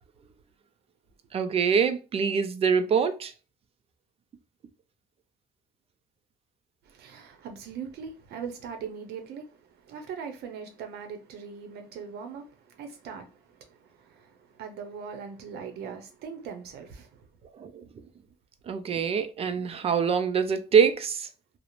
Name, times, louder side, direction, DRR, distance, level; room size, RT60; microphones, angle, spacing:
voice 1, 1.3-3.3 17.6-17.8 18.7-21.3, right 6 dB, 35° right, 0.4 m, -24 dB
voice 2, 6.9-17.3, right 6 dB, 75° right, 0.7 m, -41 dB
2.4 x 2.0 x 2.9 m
cardioid pair, 110°, 17 cm